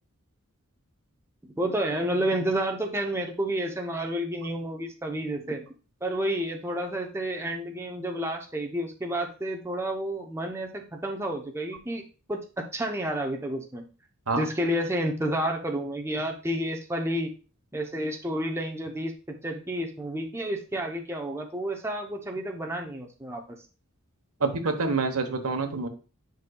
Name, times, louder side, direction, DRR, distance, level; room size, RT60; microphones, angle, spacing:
voice 1, 1.6-5.6 6.0-12.0 12.3-13.8 14.4-17.3 17.7-23.4, right 1 dB, 10° right, 1 dB, 0.7 m, -30 dB
voice 2, 24.4-25.9, right 3 dB, 80° right, 7 dB, 1.0 m, -27 dB
9.3 x 5.3 x 2.3 m, 0.35 s
head